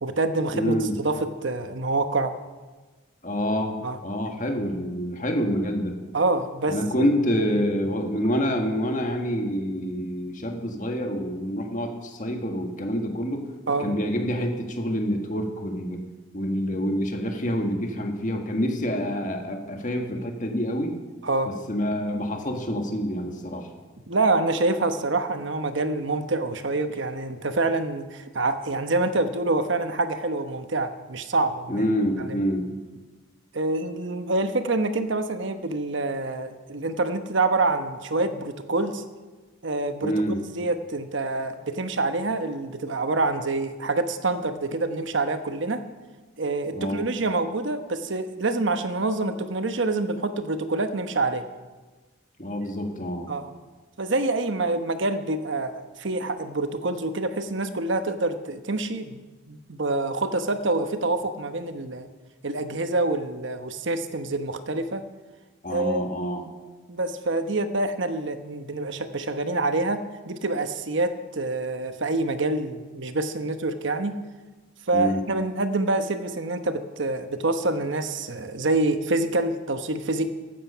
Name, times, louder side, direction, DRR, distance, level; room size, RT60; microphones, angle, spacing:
voice 1, 0.0-0.8 1.0-2.3 3.8-4.0 6.1-7.1 7.6-7.7 13.7-13.9 21.2-21.5 24.1-31.9 32.3-32.4 33.5-39.0 39.6-45.8 46.4-51.5 53.3-53.5 54.0-59.2 59.5-62.1 62.4-65.0 65.7-66.1 66.9-74.2 74.9-80.3, right 2 dB, 65° right, 9 dB, 1.0 m, -26 dB
voice 2, 0.5-1.0 3.2-6.0 6.7-13.5 13.8-16.0 16.3-21.0 21.5-23.7 31.7-32.7 40.0-40.4 46.7-47.0 52.4-53.3 65.6-66.4 74.9-75.2, equal, 40° left, 4 dB, 1.7 m, -27 dB
15.0 x 12.0 x 5.7 m, 1.3 s
head